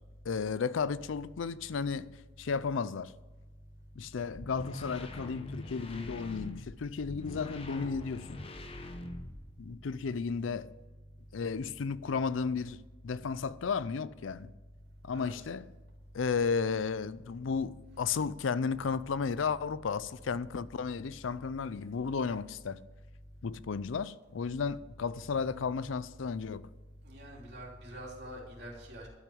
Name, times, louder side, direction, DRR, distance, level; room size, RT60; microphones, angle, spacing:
voice 1, 0.3-2.1 2.4-3.1 4.0-8.4 9.6-10.7 11.3-14.5 15.0-15.7 16.1-22.8 23.4-26.7, left 5 dB, 75° left, 0.5 m, -33 dB
sound 1, 4.3-9.7, left 1 dB, 30° left, 0.9 m, -43 dB
voice 2, 15.1-15.5 27.0-29.1, equal, 55° right, 3.1 m, -46 dB
12.0 x 5.9 x 8.6 m
head